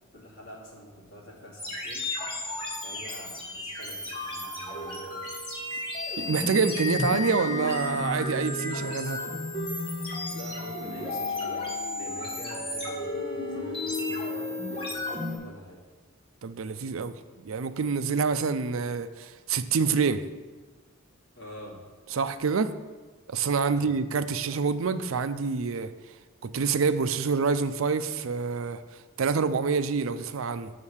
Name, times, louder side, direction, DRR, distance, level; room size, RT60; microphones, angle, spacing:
voice 1, 0.1-2.1 2.8-5.3 10.3-11.7 11.9-15.8 21.4-21.8 23.7-23.9, equal, 65° left, -4 dB, 2.8 m, -46 dB
sound 1, 1.6-15.4, left 2 dB, 25° left, 2.0 m, -33 dB
voice 2, 6.2-9.2 16.4-17.1 17.4-20.2 22.1-22.7 23.3-25.9 26.4-30.7, right 5 dB, 70° right, 12 dB, 0.5 m, -27 dB
6.5 x 6.5 x 7.2 m, 1.3 s
head